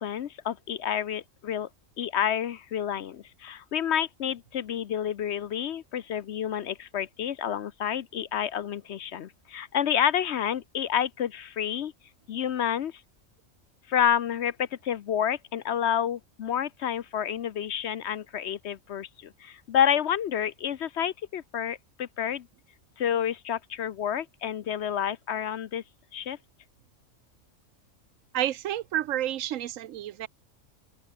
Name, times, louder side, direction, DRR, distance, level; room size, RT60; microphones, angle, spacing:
voice 1, 0.0-1.7 2.0-11.9 12.3-12.9 13.9-22.5 23.0-25.8 26.1-26.4, left 9 dB, 60° left, 0.9 m, -29 dB
voice 2, 28.3-30.3, right 12 dB, 75° right, 1.0 m, -30 dB
open air
omnidirectional pair, 1.4 m